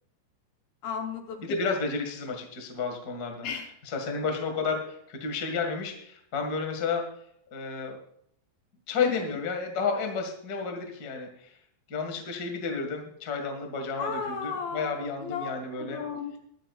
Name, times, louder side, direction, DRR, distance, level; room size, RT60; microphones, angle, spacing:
voice 1, 0.8-1.4 3.4-3.7 9.0-9.2 14.0-15.5 15.8-16.4, left 6 dB, 70° left, 3 dB, 2.5 m, -34 dB
voice 2, 1.4-3.5 3.8-7.1 7.5-8.0 8.9-11.5 11.9-16.0, left 4 dB, 50° left, 3 dB, 1.1 m, -31 dB
22.5 x 8.9 x 2.5 m, 0.70 s
omnidirectional pair, 5.1 m